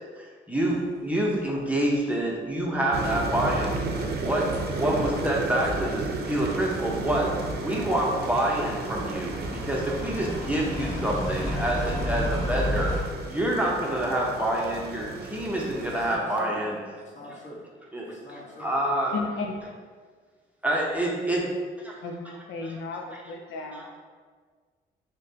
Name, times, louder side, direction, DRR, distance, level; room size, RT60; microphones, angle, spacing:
voice 1, 0.2-3.7 4.2-4.5 4.7-16.8 17.9-18.1 18.6-19.1 20.6-21.5 21.8-21.9 22.6-22.7 23.7-23.9, right 1 dB, 5° right, -4 dB, 0.7 m, -27 dB
sound 1, 2.9-16.2, right 3 dB, 50° right, 0.6 m, -34 dB
sound 2, 4.5-4.6 5.3-5.4 5.6-13.0, equal, 15° left, 1.2 m, -33 dB
voice 2, 15.8-17.7 18.0-18.8, left 1 dB, 35° left, -5 dB, 1.3 m, -42 dB
voice 3, 19.1-19.6 22.0-24.0, left 3 dB, 85° left, 2 dB, 0.5 m, -34 dB
6.4 x 2.2 x 2.7 m, 1.5 s
cardioid pair, 90°, 20 cm